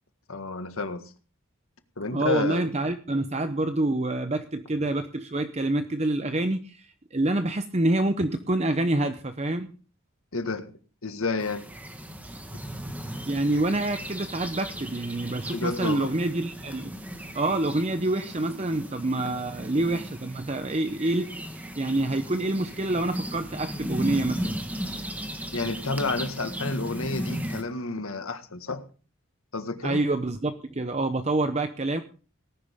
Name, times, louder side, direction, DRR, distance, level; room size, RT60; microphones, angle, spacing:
voice 1, 0.3-1.0 2.0-2.6 10.3-10.7 11.0-11.7 15.5-16.1 25.5-28.8 29.5-30.0, left 3 dB, 85° left, 8 dB, 1.8 m, -30 dB
voice 2, 2.1-9.7 13.2-17.0 17.3-24.6 29.8-32.0, right 2 dB, 30° right, 8 dB, 0.8 m, -27 dB
sound 1, 11.4-27.6, equal, 5° right, 1.4 m, -36 dB
18.5 x 11.0 x 3.7 m, 0.37 s
head